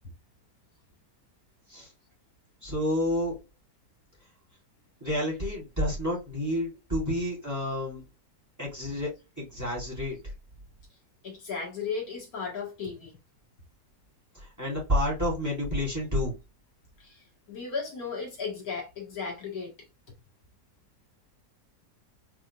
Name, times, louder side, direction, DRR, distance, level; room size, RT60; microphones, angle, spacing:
voice 1, 2.6-3.4 5.0-8.0 8.6-10.2 14.3-16.3, left 1 dB, 10° right, 2.7 m, -29 dB
voice 2, 11.2-13.2 17.0-19.7, left 5 dB, 65° left, 1.8 m, -35 dB
4.8 x 3.5 x 2.2 m
omnidirectional pair, 1.7 m